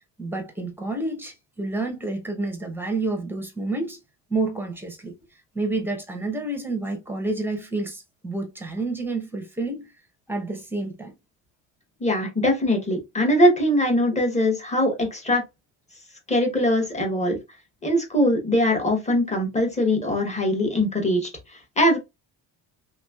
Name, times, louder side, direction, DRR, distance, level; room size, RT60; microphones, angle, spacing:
voice 1, 0.2-4.0 4.3-5.2 5.5-9.9 10.3-11.1 14.1-14.2, right 2 dB, 5° right, 0.7 m, -29 dB
voice 2, 12.0-15.4 16.3-17.4 17.8-22.0, left 1 dB, 15° left, 1.1 m, -22 dB
3.4 x 3.0 x 2.3 m
cardioid pair, 140°, 42 cm